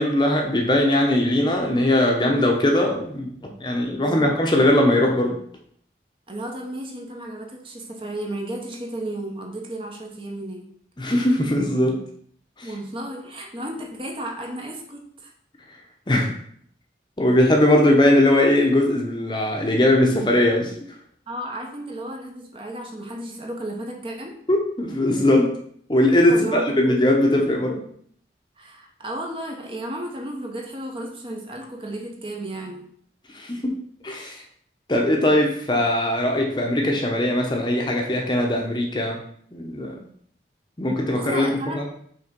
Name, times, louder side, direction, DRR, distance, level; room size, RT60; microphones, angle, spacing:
voice 1, 0.0-3.3 3.6-5.4 11.0-12.0 16.1-16.3 17.2-20.7 24.5-25.5 25.9-27.8 33.3-33.7 34.0-34.4 34.9-39.2 39.5-40.0 40.8-41.9, left 1 dB, 25° left, 1 dB, 0.8 m, -20 dB
voice 2, 3.9-4.3 6.3-10.7 12.6-15.3 21.3-24.4 26.3-27.0 28.6-32.9 41.1-41.9, right 1 dB, 30° right, 1 dB, 0.9 m, -33 dB
5.7 x 3.5 x 5.2 m, 0.63 s
head